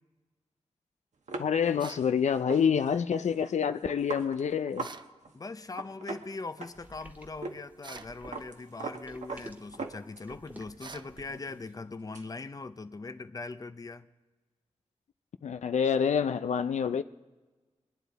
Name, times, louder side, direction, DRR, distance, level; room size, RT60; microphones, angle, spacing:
sound 1, 1.3-5.0 5.2-5.4 5.6-7.0 7.4-7.6 7.8-10.5 10.9-12.3, right 4 dB, 85° right, 1.1 m, -41 dB
voice 1, 1.4-4.9 15.4-17.0, left 7 dB, 80° left, 0.4 m, -27 dB
sound 2, 1.8-2.1 4.8-5.1 7.8-8.2 10.8-11.1, right 4 dB, 40° right, 0.4 m, -46 dB
voice 2, 5.3-14.1, left 3 dB, 30° left, 0.6 m, -41 dB
sound 3, 6.8-11.5, right 1 dB, 15° right, 1.5 m, -51 dB
23.0 x 10.0 x 4.0 m
wide cardioid pair, 105°, 12 cm